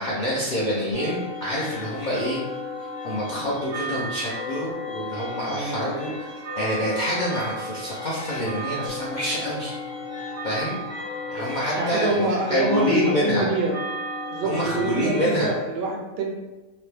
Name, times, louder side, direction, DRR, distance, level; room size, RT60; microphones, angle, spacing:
voice 1, 0.0-2.4 3.0-6.1 6.6-9.7 10.4-10.8 11.3-13.4 14.4-15.5, equal, 65° left, -7 dB, 0.4 m, -26 dB
sound 1, 0.9-15.5, left 1 dB, 20° right, 0.4 m, -34 dB
voice 2, 5.5-6.1 11.3-13.8 14.3-16.3, right 3 dB, 70° right, 1 dB, 0.6 m, -27 dB
3.0 x 2.1 x 3.2 m, 1.1 s
omnidirectional pair, 1.6 m